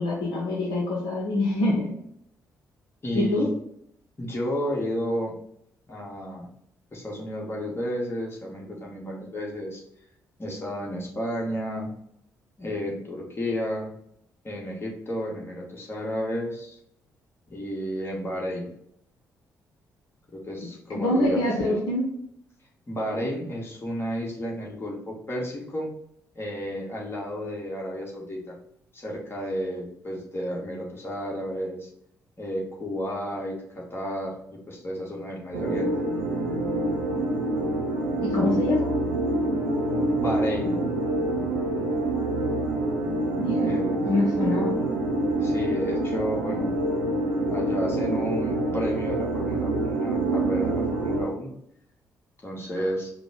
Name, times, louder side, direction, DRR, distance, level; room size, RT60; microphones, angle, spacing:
voice 1, 0.0-1.9 3.1-3.5 20.9-22.0 38.2-38.9 43.3-43.8 44.0-44.7, left 1 dB, 60° left, -2 dB, 0.9 m, -25 dB
voice 2, 3.0-3.5 4.2-5.4 5.9-6.5 6.9-9.8 10.4-11.9 12.6-13.9 14.4-16.8 17.5-18.7 20.3-21.8 22.9-25.9 26.3-28.6 28.9-31.9 32.4-36.1 40.1-40.8 43.6-44.0 45.4-46.7 47.5-51.5 52.4-53.1, equal, 25° left, -2 dB, 1.6 m, -32 dB
sound 1, 35.5-51.3, right 2 dB, 80° right, 0.8 m, -26 dB
5.0 x 2.2 x 4.8 m, 0.72 s
figure-of-eight pair, 40°, 9 cm